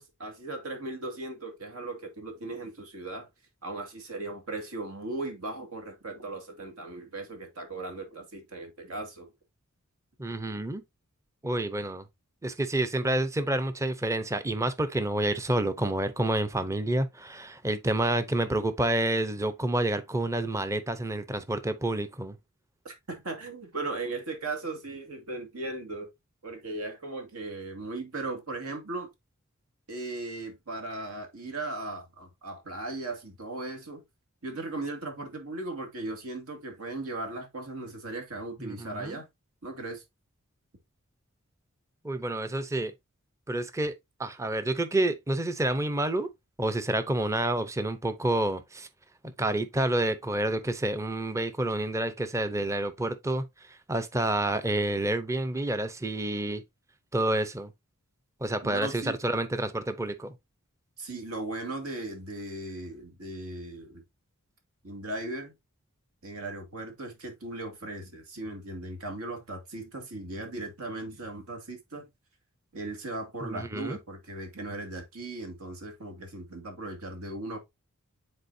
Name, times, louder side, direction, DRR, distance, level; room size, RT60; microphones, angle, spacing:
voice 1, 0.0-3.3 3.6-9.3 22.8-26.1 26.4-29.1 29.9-34.0 34.4-39.3 39.6-40.0 58.6-59.2 61.0-64.0 64.8-65.5 66.2-72.0 72.7-77.6, right 2 dB, 75° right, 2.2 m, -37 dB
voice 2, 10.2-10.8 11.4-12.0 12.4-22.4 38.6-39.2 42.0-42.9 43.5-43.9 44.2-46.3 46.6-48.9 49.2-53.5 53.9-56.6 57.1-57.7 58.4-60.3 73.4-74.0, right 1 dB, 15° right, 0.6 m, -29 dB
9.6 x 4.1 x 2.6 m
head